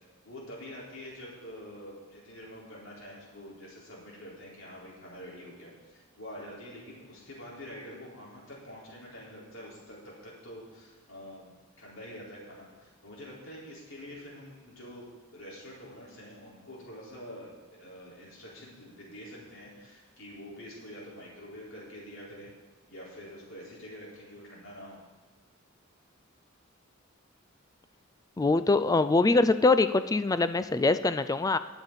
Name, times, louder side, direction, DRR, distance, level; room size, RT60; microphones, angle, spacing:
voice 1, 0.2-15.0 15.3-22.5 22.9-25.0, equal, 80° left, -5 dB, 4.2 m, -46 dB
voice 2, 28.4-31.6, left 3 dB, 15° left, 12 dB, 0.3 m, -23 dB
20.0 x 7.0 x 4.1 m, 1.5 s
head